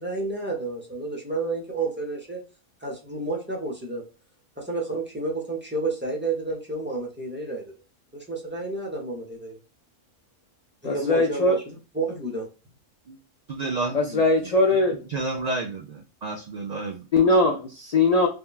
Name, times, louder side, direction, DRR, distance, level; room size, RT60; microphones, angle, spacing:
voice 1, 0.0-2.4 2.8-4.0 4.6-7.6 8.1-9.6 10.8-12.5, right 2 dB, 10° right, -1 dB, 0.5 m, -30 dB
voice 2, 10.8-11.6 13.9-15.0 17.1-18.3, left 2 dB, 85° left, 2 dB, 0.3 m, -20 dB
voice 3, 13.5-14.2 14.7-14.8 15.1-17.1, right 3 dB, 75° right, 3 dB, 0.3 m, -31 dB
3.5 x 2.2 x 2.3 m, 0.33 s
omnidirectional pair, 1.3 m